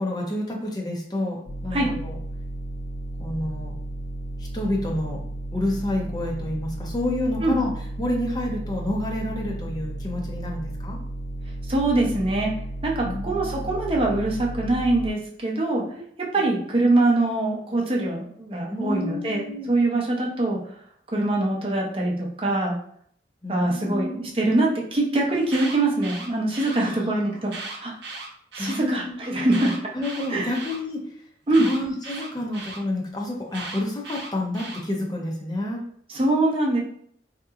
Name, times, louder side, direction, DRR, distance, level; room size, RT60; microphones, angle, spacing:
voice 1, 0.0-2.2 3.2-3.7 4.4-5.2 5.5-7.7 8.0-11.0 13.0-13.7 18.7-19.7 23.4-24.3 26.8-27.0 28.6-29.7 29.9-31.1 31.6-35.8, left 1 dB, 25° left, -1 dB, 0.6 m, -29 dB
sound 1, 1.5-15.1, right 1 dB, 65° left, 0.4 m, -34 dB
voice 2, 11.6-12.5 12.8-15.8 16.2-20.7 21.1-22.8 23.5-27.9 28.5-29.7 30.3-30.5 31.5-31.7 36.1-36.8, right 2 dB, 30° right, -1 dB, 0.6 m, -23 dB
Alarm, 25.3-26.8 27.4-28.8 29.4-30.8 31.5-32.8 33.5-34.8, right 3 dB, 70° right, 0.7 m, -37 dB
3.7 x 2.8 x 2.4 m, 0.63 s
head